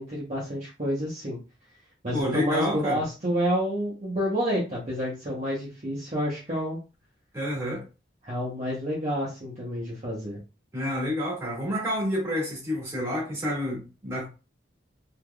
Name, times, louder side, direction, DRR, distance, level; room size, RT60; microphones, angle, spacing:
voice 1, 0.0-1.4 2.0-6.8 8.2-10.4, equal, 35° right, -7 dB, 0.9 m, -29 dB
voice 2, 2.1-3.0 7.3-7.8 10.7-14.3, equal, 15° right, -5 dB, 1.6 m, -29 dB
3.3 x 2.8 x 2.3 m, 0.31 s
head